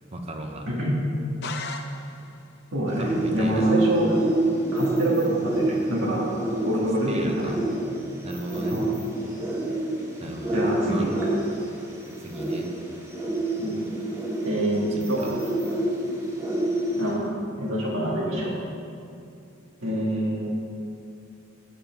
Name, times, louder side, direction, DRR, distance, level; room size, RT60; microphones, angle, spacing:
voice 1, 0.1-0.7 3.0-3.8 7.1-7.6 8.2-8.8 10.2-11.1 12.2-12.7 14.9-15.3, right 1 dB, 30° right, 3 dB, 0.9 m, -35 dB
voice 2, 0.7-1.0 2.7-4.1 4.7-6.3 6.6-7.5 8.7-8.9 10.5-11.1 13.6-13.9 14.4-15.2 17.0-17.3 17.6-18.5 19.8-20.6, right 1 dB, 85° right, -5 dB, 1.9 m, -26 dB
sound 1, 1.4-2.5, left 4 dB, 60° left, 0.6 m, -36 dB
sound 2, 2.9-17.1, right 1 dB, 15° right, 1.3 m, -28 dB
7.3 x 7.2 x 5.8 m, 2.5 s
head